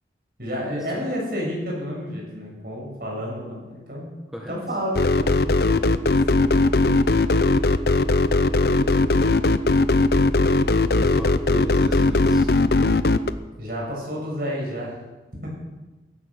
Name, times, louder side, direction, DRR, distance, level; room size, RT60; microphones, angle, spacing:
voice 1, 0.4-4.1 4.5-5.4 6.3-6.6 13.6-15.0 15.4-15.5, equal, 55° right, -3 dB, 7.3 m, -30 dB
sound 1, 4.9-13.3, left 2 dB, 60° left, 0.6 m, -19 dB
voice 2, 10.9-12.5, equal, ahead, -1 dB, 1.3 m, -34 dB
16.5 x 11.5 x 6.6 m, 1.1 s
head